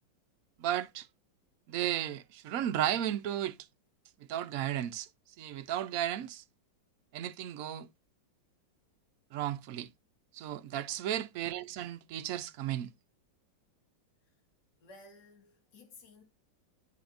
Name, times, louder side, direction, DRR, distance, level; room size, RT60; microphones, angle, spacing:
voice 1, 0.6-1.1 1.7-3.6 4.3-5.1 5.4-6.4 7.1-7.9 9.3-9.9 10.3-12.9, right 11 dB, 65° right, 0.9 m, -34 dB
voice 2, 10.6-10.9 14.8-16.2, left 2 dB, 75° left, 2.5 m, -56 dB
11.0 x 4.3 x 2.6 m
omnidirectional pair, 2.0 m